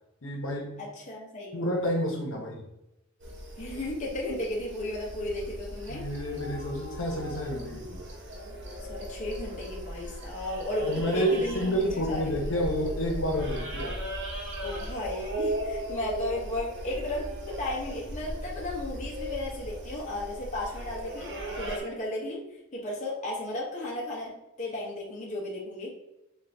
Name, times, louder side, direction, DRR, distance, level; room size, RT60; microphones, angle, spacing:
voice 1, 0.2-0.7 1.5-2.6 5.9-8.0 10.8-14.0, equal, 75° left, 0 dB, 0.8 m, -29 dB
voice 2, 0.8-1.6 3.6-6.0 8.9-12.3 14.6-25.9, left 1 dB, 35° left, -3 dB, 0.7 m, -34 dB
sound 1, 3.2-21.8, right 1 dB, 60° right, 0.9 m, -37 dB
3.8 x 2.4 x 3.3 m, 0.89 s
head